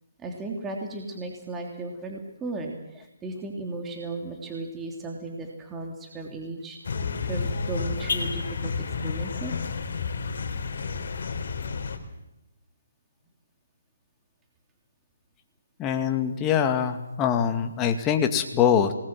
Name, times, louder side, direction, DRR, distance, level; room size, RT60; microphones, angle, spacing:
voice 1, 0.2-6.8 7.2-8.7 9.0-9.5, right 2 dB, 10° right, 2 dB, 3.2 m, -35 dB
sound 1, 6.8-12.0, left 4 dB, 55° left, 3.9 m, -30 dB
voice 2, 15.8-18.9, left 8 dB, 15° left, 6 dB, 2.2 m, -23 dB
27.5 x 20.5 x 7.5 m, 0.92 s
figure-of-eight pair, 150°, 0 cm